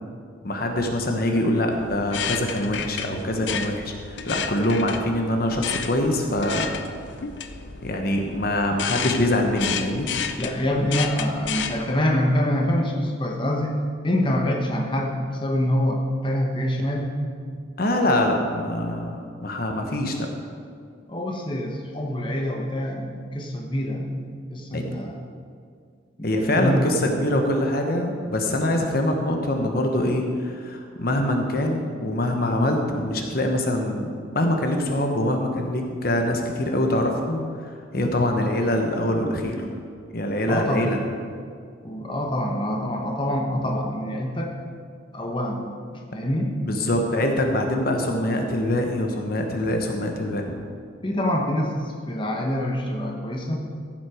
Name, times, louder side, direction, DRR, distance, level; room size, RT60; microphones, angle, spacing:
voice 1, 0.4-6.7 7.8-10.1 17.8-20.3 24.7-24.8 26.2-39.7 40.1-41.0 46.6-50.4, left 1 dB, 50° left, 3 dB, 1.1 m, -24 dB
sound 1, 1.7-11.8, left 7 dB, 70° left, 0.6 m, -32 dB
voice 2, 10.4-13.8 14.0-17.1 21.1-24.2 24.5-25.2 26.2-26.9 40.5-40.9 41.8-44.5 45.1-46.6 51.0-53.6, left 1 dB, 25° left, 1 dB, 1.1 m, -25 dB
14.5 x 7.3 x 4.9 m, 2.2 s
head